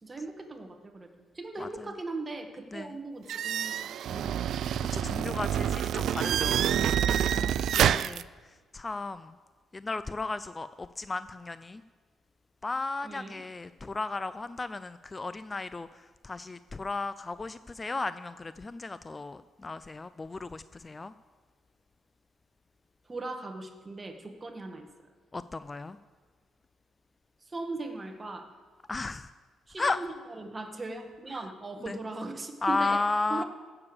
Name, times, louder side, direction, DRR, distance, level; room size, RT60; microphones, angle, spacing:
voice 1, 0.0-1.1 1.3-3.7 4.1-4.5 13.0-13.4 23.1-24.9 27.5-28.5 29.7-33.0 33.3-33.4, right 2 dB, 25° right, 5 dB, 1.6 m, -39 dB
voice 2, 1.6-1.9 2.7-3.0 4.9-6.6 7.3-9.4 9.7-11.8 12.6-21.1 25.3-26.0 28.9-29.3 29.8-30.0 31.8-32.0 32.6-33.4, left 3 dB, 25° left, 14 dB, 0.4 m, -34 dB
sound 1, 3.3-8.2, right 10 dB, 70° right, 0.3 m, -27 dB
15.5 x 6.9 x 7.0 m, 1.5 s
cardioid pair, 90°, 0 cm